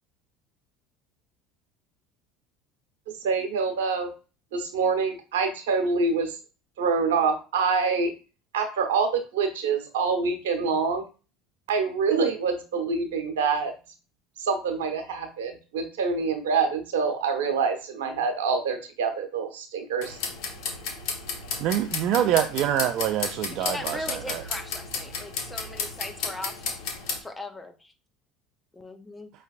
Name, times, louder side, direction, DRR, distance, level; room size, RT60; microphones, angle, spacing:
voice 1, 3.2-4.1 4.5-6.4 6.8-8.1 8.5-11.1 11.7-13.7 14.4-20.2, right 5 dB, 85° right, 5 dB, 1.0 m, -26 dB
sound 1, 20.0-27.2, left 5 dB, 70° left, 1.1 m, -33 dB
voice 2, 21.6-24.4, right 11 dB, 60° right, 7 dB, 0.4 m, -25 dB
voice 3, 23.6-26.9 27.2-27.9 28.7-29.3, left 2 dB, 10° left, 6 dB, 0.8 m, -39 dB
5.4 x 3.2 x 2.5 m, 0.33 s
hypercardioid pair, 80°, 0 cm